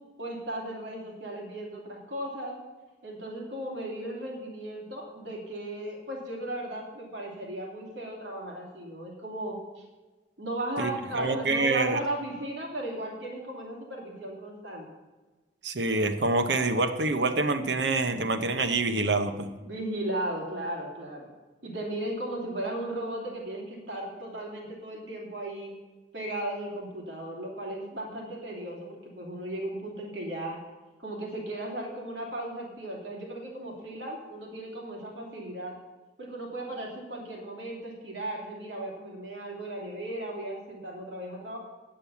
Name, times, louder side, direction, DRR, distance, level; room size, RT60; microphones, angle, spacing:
voice 1, 0.2-2.6 3.0-9.6 10.4-14.9 19.6-21.3 21.6-25.7 26.1-30.6 31.0-35.7 36.2-41.6, right 1 dB, 85° right, -1 dB, 2.8 m, -36 dB
voice 2, 10.8-12.0 15.6-19.5, right 3 dB, 70° right, 8 dB, 1.0 m, -26 dB
8.7 x 7.6 x 8.3 m, 1.2 s
head